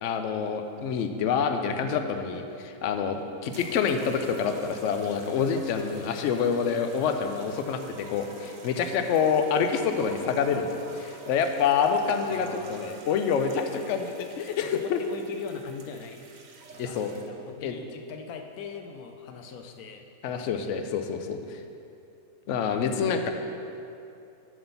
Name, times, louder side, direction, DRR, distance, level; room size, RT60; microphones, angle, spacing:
voice 1, 0.0-15.0 16.8-17.1 17.6-17.8 20.2-21.6 22.5-23.3, left 6 dB, 65° left, 6 dB, 0.8 m, -27 dB
sound 1, 3.5-17.5 18.4-18.7, right 3 dB, 55° right, 0.5 m, -49 dB
voice 2, 12.3-13.8 14.6-16.2 16.7-17.0 17.3-20.8, left 5 dB, 85° left, 5 dB, 1.1 m, -42 dB
7.8 x 4.2 x 6.7 m, 2.7 s
omnidirectional pair, 1.5 m